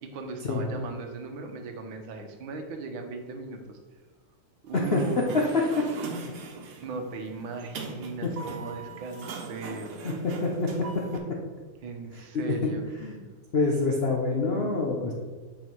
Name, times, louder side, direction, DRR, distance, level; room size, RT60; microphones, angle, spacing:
voice 1, 0.0-3.8 4.6-6.1 6.8-9.9 11.8-12.8, right 3 dB, 70° right, 4 dB, 1.6 m, -38 dB
voice 2, 4.7-5.8 8.2-8.3 10.0-10.7 12.3-12.5 13.0-13.2 13.5-15.1, left 3 dB, 80° left, -1 dB, 0.5 m, -26 dB
Sliding door, 4.7-11.2, right 4 dB, 85° right, 1.9 m, -40 dB
8.4 x 5.0 x 4.5 m, 1.4 s
omnidirectional pair, 2.4 m